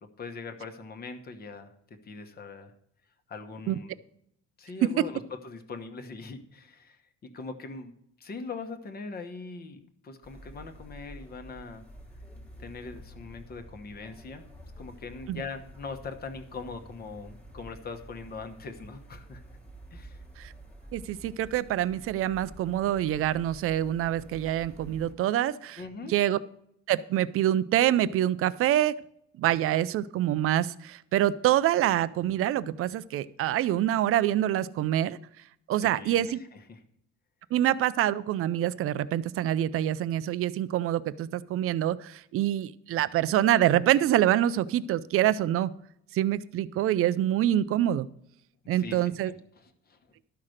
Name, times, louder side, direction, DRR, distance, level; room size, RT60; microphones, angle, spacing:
voice 1, 0.2-2.7 3.3-4.0 4.6-7.9 8.2-11.9 12.6-14.4 14.8-19.4 19.9-20.2 25.8-26.1 35.7-36.8 48.7-50.1, left 4 dB, 30° left, 7 dB, 1.1 m, -41 dB
sound 1, 10.2-25.1, equal, 5° left, 1.4 m, -49 dB
voice 2, 20.9-25.8 26.1-26.4 26.9-29.0 29.4-35.2 35.7-36.4 37.5-45.7 46.1-48.1 48.7-49.3, right 12 dB, 50° right, 16 dB, 0.5 m, -26 dB
12.0 x 5.8 x 6.4 m, 0.72 s
cardioid pair, 175°, 30 cm